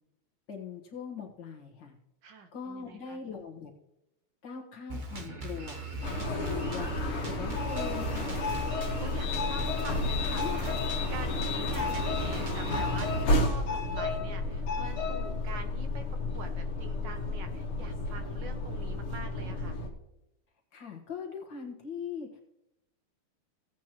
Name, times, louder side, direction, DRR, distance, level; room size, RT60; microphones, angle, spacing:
voice 1, 0.5-2.0 2.5-3.7 4.4-5.8 6.3-8.5 9.8-9.9 10.4-10.6 20.7-22.4, left 6 dB, 60° left, 1 dB, 2.1 m, -41 dB
voice 2, 2.2-3.2 6.6-7.5 9.0-10.8 11.1-16.1 16.3-19.8, right 4 dB, 65° right, 8 dB, 1.4 m, -45 dB
Drum kit, 4.9-13.2, right 2 dB, 40° right, 0.7 m, -39 dB
sound 1, 6.0-19.9, left 2 dB, 80° left, 2.3 m, -31 dB
17.0 x 8.3 x 3.0 m, 0.88 s
omnidirectional pair, 2.3 m